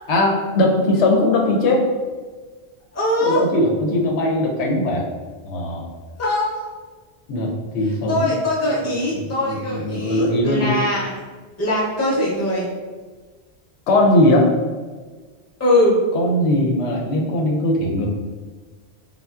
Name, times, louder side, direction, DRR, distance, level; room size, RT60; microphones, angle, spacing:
voice 1, 0.1-1.8 3.2-5.1 5.4-5.9 7.3-8.3 8.6-10.7 13.9-14.5 16.1-18.1, left 1 dB, 90° left, 0 dB, 0.9 m, -20 dB
voice 2, 2.9-3.4 6.2-6.6 8.1-11.1 11.6-12.7 15.6-16.0, left 1 dB, 20° left, -5 dB, 0.5 m, -21 dB
3.7 x 2.0 x 2.3 m, 1.4 s
omnidirectional pair, 1.1 m